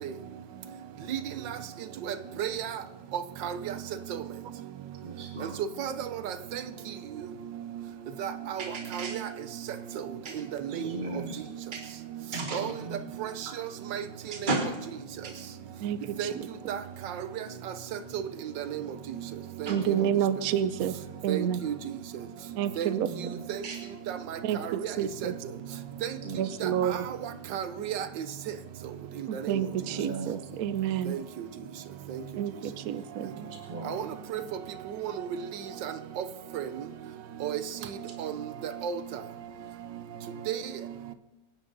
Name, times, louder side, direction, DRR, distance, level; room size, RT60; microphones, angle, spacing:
voice 1, 2.1-2.7 3.4-3.6 4.1-4.2 5.8-6.6 8.2-8.6 8.9-9.2 10.7-10.9 12.5-12.7 13.2-13.3 13.9-14.0 14.4-14.6 16.2-16.3 16.7-16.8 18.1-18.2 18.6-18.8 19.6-19.7 21.3-21.7 22.8-22.9 23.5-23.6 24.3-24.9 25.2-25.3 26.0-26.1 26.6-26.7 27.5-28.1 29.3-29.6 31.1-31.2 33.9-34.0 34.3-34.4 35.0-35.1 36.2-36.3 36.5-36.6 37.4-37.6 38.2-38.3 38.8-39.0 40.5-40.6, right 9 dB, 85° right, 11 dB, 1.5 m, -32 dB
voice 2, 5.0-5.6 8.6-9.1 10.2-10.3 10.7-11.4 11.7-11.8 12.3-13.1 14.3-14.6 15.2-15.3 19.6-20.2 20.8-21.2 23.0-23.8 26.2-26.8 29.7-30.5 33.3-34.0, right 2 dB, 30° right, 2 dB, 1.4 m, -36 dB
voice 3, 19.7-20.9 21.2-21.6 22.6-23.1 24.5-24.6 25.0-25.1 26.4-26.9 29.3-31.1 32.4-33.3, right 10 dB, 65° right, 12 dB, 0.9 m, -28 dB
25.0 x 10.0 x 4.0 m, 1.0 s
omnidirectional pair, 1.9 m